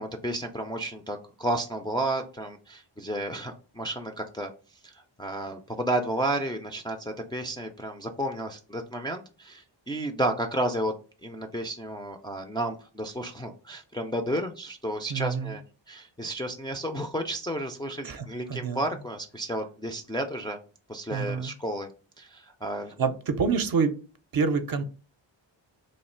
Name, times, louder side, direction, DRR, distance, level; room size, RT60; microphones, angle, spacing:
voice 1, 0.0-4.5 4.8-10.9 11.2-20.6 20.9-21.9 22.2-22.9, right 1 dB, 10° left, 3 dB, 0.3 m, -32 dB
voice 2, 15.1-15.6 18.0-18.8 21.1-21.5 23.0-24.0 24.3-24.8, right 5 dB, 50° right, 9 dB, 0.5 m, -27 dB
3.1 x 2.3 x 4.3 m, 0.35 s
wide cardioid pair, 95°, 46 cm